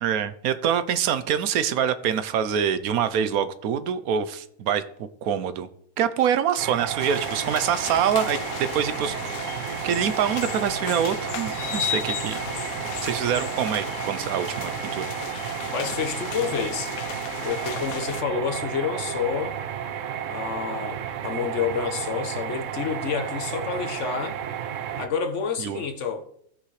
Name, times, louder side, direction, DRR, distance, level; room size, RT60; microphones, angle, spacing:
voice 1, 0.0-5.7 6.0-9.2 9.4-12.4 13.0-15.1 25.6-25.8, right 8 dB, 85° right, 1.1 m, -25 dB
sound 1, 6.6-25.1, right 9 dB, 65° right, 1.0 m, -32 dB
sound 2, 7.0-18.2, left 11 dB, 80° left, 1.1 m, -35 dB
voice 2, 15.7-16.9 17.4-19.6 20.3-24.4 25.0-26.2, left 6 dB, 60° left, 1.2 m, -29 dB
16.5 x 5.9 x 3.2 m
omnidirectional pair, 1.5 m